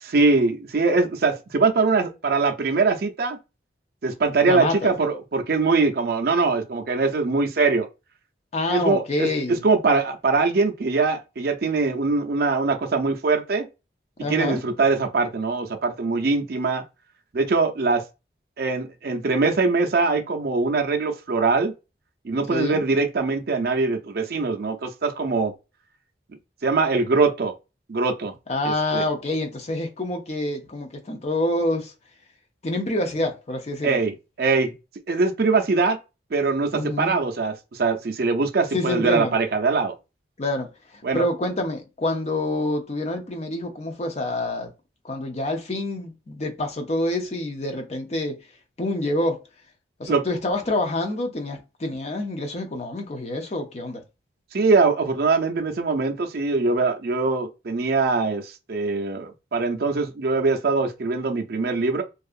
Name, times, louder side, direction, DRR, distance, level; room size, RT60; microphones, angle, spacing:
voice 1, 0.0-3.4 4.0-7.9 8.7-13.7 14.3-16.8 17.3-18.0 18.6-21.7 22.2-25.5 26.6-27.5 27.9-28.3 28.6-29.1 33.8-34.7 35.1-36.0 36.3-39.9 41.0-41.2 50.1-50.3 54.5-62.0, right 3 dB, 55° right, 0.5 m, -22 dB
voice 2, 4.4-4.9 8.5-9.6 14.2-14.6 22.5-22.8 28.5-31.9 32.6-34.0 36.7-37.1 38.7-39.3 40.4-44.7 45.0-48.4 48.8-49.4 50.0-54.0, left 1 dB, 35° left, 0.5 m, -27 dB
2.6 x 2.4 x 2.4 m
head